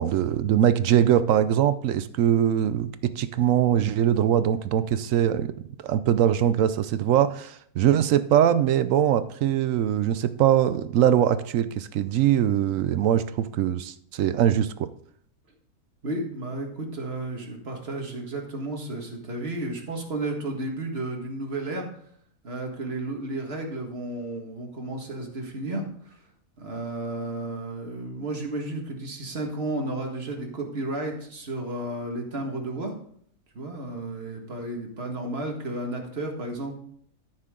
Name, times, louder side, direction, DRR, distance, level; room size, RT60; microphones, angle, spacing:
voice 1, 0.0-5.5 5.8-14.9, right 10 dB, 70° right, 13 dB, 0.8 m, -22 dB
voice 2, 16.0-21.9 22.4-25.9 26.6-32.9 33.5-36.8, right 2 dB, 40° right, 2 dB, 1.9 m, -32 dB
13.5 x 6.5 x 3.7 m, 0.63 s
omnidirectional pair, 1.6 m